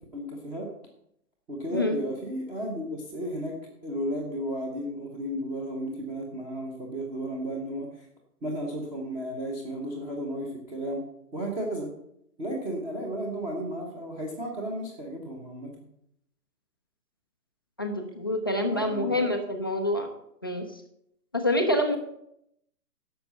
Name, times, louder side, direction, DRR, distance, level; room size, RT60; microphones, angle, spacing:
voice 1, 0.1-0.7 1.5-3.6 3.8-7.9 8.4-11.0 11.3-11.9 12.4-15.7 18.7-19.3, right 1 dB, 10° right, -1 dB, 0.9 m, -33 dB
voice 2, 17.8-20.1 20.4-20.6 21.3-22.0, left 1 dB, 15° left, 3 dB, 0.5 m, -26 dB
11.5 x 6.8 x 6.7 m, 0.75 s
hypercardioid pair, 150°, 48 cm